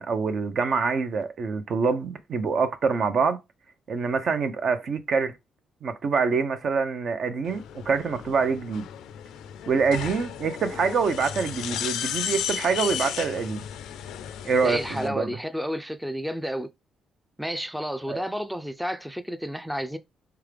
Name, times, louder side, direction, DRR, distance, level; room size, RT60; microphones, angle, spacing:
voice 1, 0.0-3.4 3.9-5.3 5.8-8.9 9.7-13.7 14.4-15.3 18.1-18.2, right 5 dB, 55° right, 0.7 m, -25 dB
sound 1, 7.4-15.1, left 10 dB, 85° left, 0.4 m, -34 dB
voice 2, 14.6-16.7 17.4-20.0, equal, 5° right, 0.4 m, -31 dB
3.6 x 3.4 x 3.4 m
cardioid pair, 90°, 0 cm